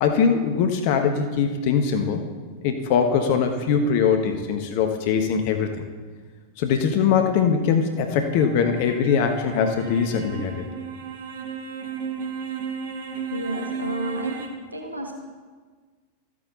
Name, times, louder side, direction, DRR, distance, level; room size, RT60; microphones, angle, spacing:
voice 1, 0.0-2.3 2.6-5.7 6.6-10.7, left 6 dB, 50° left, 6 dB, 1.0 m, -22 dB
sound 1, 7.9-14.5, right 6 dB, 55° right, 1.4 m, -34 dB
voice 2, 13.3-14.4 14.7-15.1, equal, 80° right, 2 dB, 1.4 m, -30 dB
13.5 x 8.6 x 4.0 m, 1.5 s
figure-of-eight pair, 90°, 0 cm